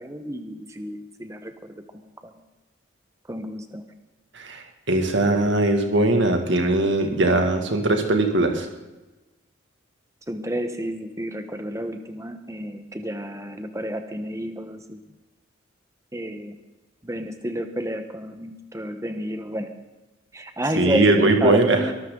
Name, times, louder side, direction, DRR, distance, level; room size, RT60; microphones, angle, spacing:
voice 1, 0.0-2.4 3.3-3.8 10.3-15.0 16.1-16.6 17.0-19.7 20.3-21.9, right 1 dB, 15° right, 7 dB, 1.1 m, -30 dB
voice 2, 4.3-8.7 20.8-21.9, right 2 dB, 60° right, 4 dB, 2.1 m, -20 dB
22.5 x 13.0 x 3.9 m, 1.1 s
head